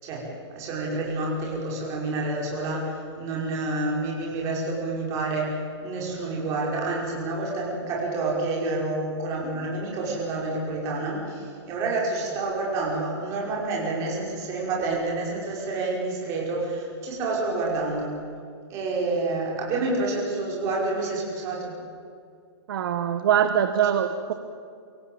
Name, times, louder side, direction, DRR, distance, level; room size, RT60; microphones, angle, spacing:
voice 1, 0.0-18.1 18.7-21.7, right 2 dB, 20° right, -3 dB, 5.4 m, -28 dB
voice 2, 22.7-24.3, right 9 dB, 50° right, 7 dB, 1.2 m, -23 dB
24.0 x 16.5 x 8.9 m, 2.3 s
hypercardioid pair, 175°, 15 cm